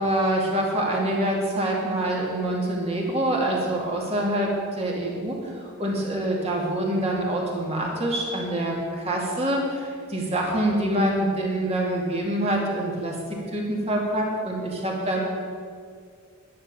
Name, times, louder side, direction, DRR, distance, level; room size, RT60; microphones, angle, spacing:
voice 1, 0.0-13.2 13.5-15.2, right 1 dB, 25° right, -2 dB, 2.5 m, -25 dB
11.0 x 10.5 x 7.0 m, 2.1 s
head